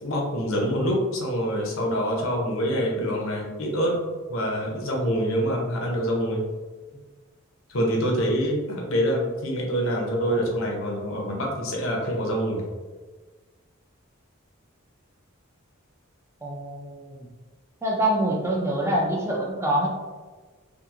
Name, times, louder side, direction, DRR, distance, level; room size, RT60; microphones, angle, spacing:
voice 1, 0.0-4.0 4.3-6.4 7.7-12.6, equal, 65° left, -1 dB, 0.6 m, -26 dB
voice 2, 16.4-17.3 17.8-19.9, right 1 dB, 10° right, -2 dB, 0.4 m, -25 dB
2.8 x 2.5 x 2.4 m, 1.4 s
head